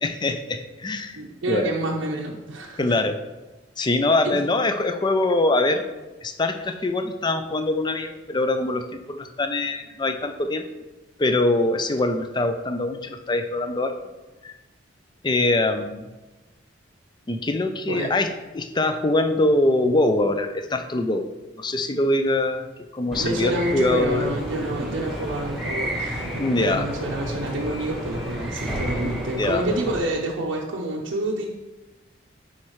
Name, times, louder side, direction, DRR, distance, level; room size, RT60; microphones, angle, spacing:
voice 1, 0.0-1.2 1.5-1.7 2.8-3.2 3.8-5.9 6.2-10.6 11.2-13.9 14.4-14.5 15.2-16.1 17.3-18.3 18.5-21.3 21.6-22.7 22.9-24.3 26.4-26.9 29.4-29.6, left 2 dB, 25° left, 8 dB, 0.4 m, -23 dB
voice 2, 1.1-2.9 4.2-4.4 17.9-18.1 23.1-31.5, right 1 dB, 85° right, -2 dB, 0.7 m, -28 dB
sound 1, 23.1-30.0, equal, ahead, 1.3 m, -31 dB
10.5 x 4.3 x 3.1 m, 1.2 s
head